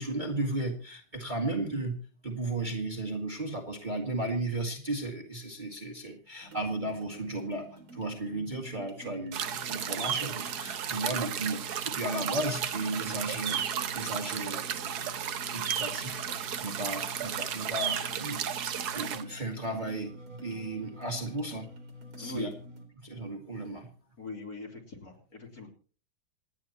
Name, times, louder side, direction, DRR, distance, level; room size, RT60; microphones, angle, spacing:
voice 1, 0.0-13.6 13.9-18.4 18.9-20.1 20.4-21.7 22.2-22.5 23.0-23.9, right 2 dB, 20° right, 1 dB, 2.1 m, -35 dB
sound 1, 6.4-22.9, left 1 dB, 75° right, 3.8 m, -48 dB
sound 2, 9.3-19.2, right 9 dB, 55° right, 1.3 m, -33 dB
voice 2, 22.2-22.5 24.2-25.7, left 3 dB, 45° left, 0 dB, 3.8 m, -41 dB
27.5 x 9.6 x 3.0 m, 0.38 s
omnidirectional pair, 2.3 m